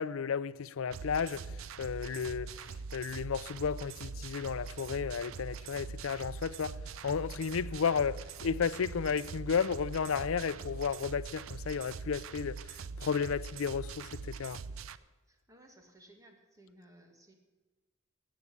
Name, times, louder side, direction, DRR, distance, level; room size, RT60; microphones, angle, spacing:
voice 1, 0.0-6.8 7.0-14.6, left 6 dB, 85° left, 0.5 m, -33 dB
sound 1, 0.9-15.0, right 5 dB, 90° right, 0.5 m, -43 dB
voice 2, 15.3-17.3, right 1 dB, 15° right, 1.9 m, -59 dB
13.5 x 8.2 x 8.5 m
head